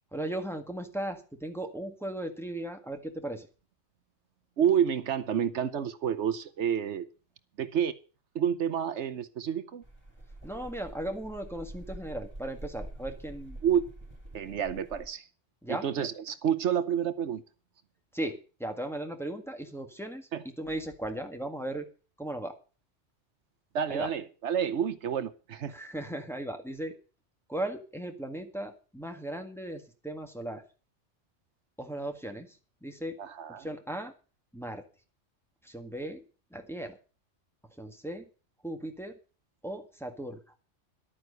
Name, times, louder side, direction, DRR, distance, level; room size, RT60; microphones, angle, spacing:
voice 1, 0.1-3.5 10.4-13.6 15.6-16.1 18.1-20.3 20.6-21.9 22.2-22.6 23.9-24.1 25.7-26.9 27.5-30.6 31.8-32.5 32.8-33.2 33.5-34.1 34.5-34.8 35.6-36.2 36.5-37.0 37.8-38.2 38.6-39.1 39.6-40.4, right 1 dB, ahead, 4 dB, 1.7 m, -37 dB
voice 2, 4.6-7.1 7.6-7.9 8.3-9.8 13.6-13.9 14.3-15.3 15.7-17.4 20.3-20.4 23.7-25.7 33.2-33.7, right 8 dB, 75° right, 13 dB, 1.1 m, -29 dB
sound 1, 9.8-15.1, right 1 dB, 20° right, 4.0 m, -46 dB
11.5 x 9.2 x 6.7 m, 0.36 s
omnidirectional pair, 1.2 m